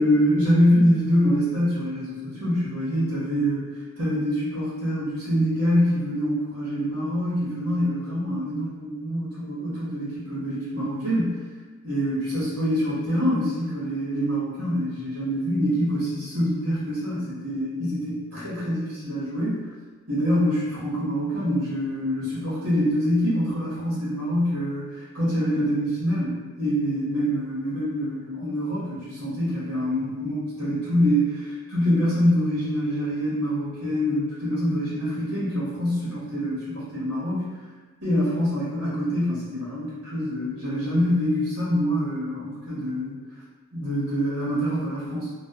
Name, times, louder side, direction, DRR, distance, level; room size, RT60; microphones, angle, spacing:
voice 1, 0.0-3.7 4.0-11.3 11.8-19.6 20.1-37.5 38.0-43.2 43.7-45.3, equal, 85° right, -10 dB, 1.1 m, -25 dB
2.6 x 2.2 x 2.2 m, 1.4 s
head